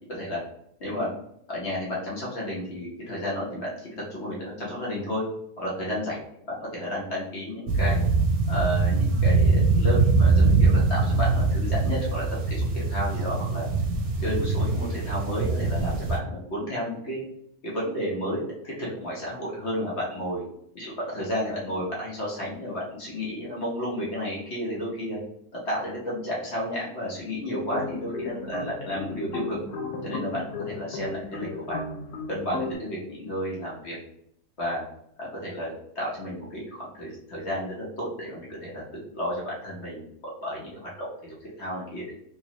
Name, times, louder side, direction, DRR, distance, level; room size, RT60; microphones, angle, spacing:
voice 1, 0.1-0.4 0.8-1.1 1.5-5.2 5.6-6.1 6.5-8.0 8.5-13.7 14.2-17.2 17.6-20.4 20.7-25.2 25.5-29.6 30.0-31.8 32.3-34.0 34.6-34.8 35.2-42.1, equal, 50° left, -5 dB, 1.2 m, -32 dB
sound 1, 7.7-16.2, right 3 dB, 70° right, 1.1 m, -22 dB
sound 2, 27.5-32.7, left 3 dB, 80° left, 1.2 m, -35 dB
3.2 x 3.1 x 2.9 m, 0.73 s
omnidirectional pair, 1.7 m